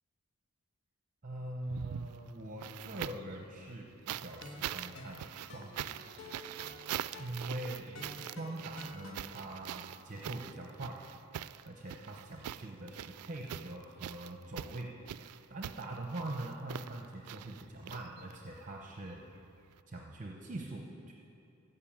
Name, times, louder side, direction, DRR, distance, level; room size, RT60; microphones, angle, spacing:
voice 1, 1.2-5.9 7.2-11.0 11.6-14.9 15.5-19.2 19.9-21.1, right 1 dB, 35° right, 1 dB, 0.8 m, -43 dB
sound 1, 1.6-3.4 4.1-18.6 19.7-19.8, right 11 dB, 90° right, 0.3 m, -43 dB
sound 2, 4.2-9.1, left 1 dB, 60° left, 1.3 m, -50 dB
15.0 x 5.7 x 8.8 m, 2.6 s
head